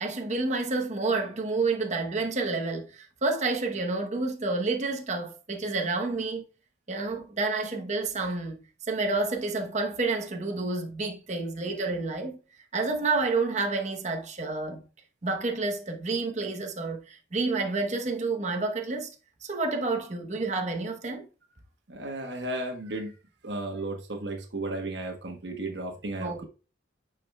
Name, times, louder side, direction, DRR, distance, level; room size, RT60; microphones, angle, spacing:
voice 1, 0.0-6.4 6.9-12.4 12.7-14.8 15.2-19.1 19.4-21.3 26.2-26.5, right 3 dB, 40° right, 0.9 m, -29 dB
voice 2, 21.9-23.1 23.4-26.5, right 2 dB, 70° right, 1.2 m, -34 dB
8.9 x 4.7 x 2.3 m
head